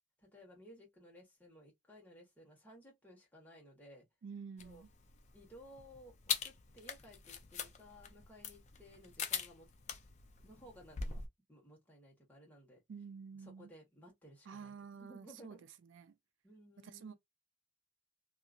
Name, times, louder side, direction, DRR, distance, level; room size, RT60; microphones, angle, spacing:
voice 1, 0.2-4.0 4.6-4.8 5.3-6.1 6.4-9.7 10.4-11.2 11.5-12.8 13.6-14.7 15.0-15.6 16.4-17.2, equal, 10° left, 1.3 m, -58 dB
voice 2, 4.2-4.9 12.9-13.7 14.4-16.2 16.8-17.1, right 6 dB, 75° right, 0.3 m, -50 dB
sound 1, 4.6-11.3, left 7 dB, 35° left, 0.5 m, -43 dB
2.8 x 2.5 x 2.4 m
head